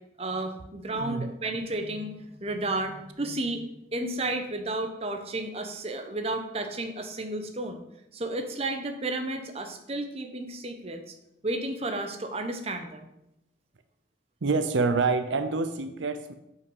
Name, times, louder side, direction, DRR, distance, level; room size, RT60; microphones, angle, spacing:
voice 1, 0.2-3.6 3.9-7.8 8.1-11.0 11.4-13.1, right 2 dB, 30° right, 6 dB, 0.9 m, -32 dB
voice 2, 1.0-1.3 14.4-16.3, right 4 dB, 80° right, 9 dB, 0.6 m, -27 dB
8.0 x 5.6 x 5.5 m, 0.84 s
head